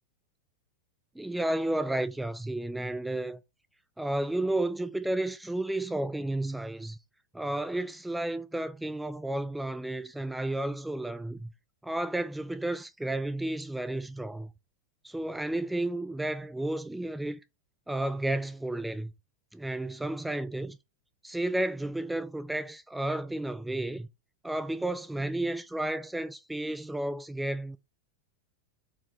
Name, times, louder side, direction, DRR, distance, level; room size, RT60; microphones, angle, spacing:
voice 1, 1.2-3.4 4.0-7.0 7.3-11.5 11.8-14.5 15.0-17.4 17.9-19.1 19.5-20.8 21.2-24.1 24.4-27.8, right 1 dB, 5° right, 0.3 m, -32 dB
4.4 x 3.6 x 3.1 m
figure-of-eight pair, 90°, 0 cm